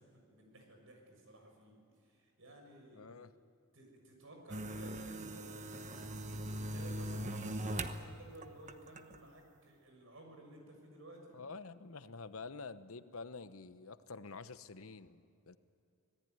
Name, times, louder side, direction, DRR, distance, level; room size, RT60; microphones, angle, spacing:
voice 1, 0.0-3.1 3.7-11.4, right 1 dB, 70° right, 2 dB, 6.5 m, -56 dB
voice 2, 2.9-3.3 11.3-15.6, left 4 dB, 80° left, 13 dB, 0.9 m, -48 dB
sound 1, 4.5-8.0 8.4-9.2, right 1 dB, 35° right, 1.1 m, -40 dB
26.0 x 18.5 x 9.4 m, 2.5 s
head